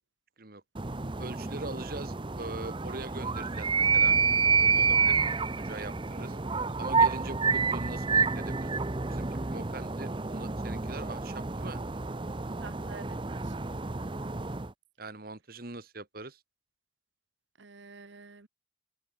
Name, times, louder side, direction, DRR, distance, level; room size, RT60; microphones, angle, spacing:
sound 1, 0.8-14.7, right 5 dB, 25° right, 0.7 m, -29 dB
voice 1, 1.2-4.2 4.6-5.2 5.6-6.4 6.8-8.7 9.1-11.8 15.0-16.4, right 2 dB, 50° right, 1.9 m, -42 dB
voice 2, 12.6-13.5 17.6-18.5, right 4 dB, 80° right, 1.2 m, -49 dB
open air
head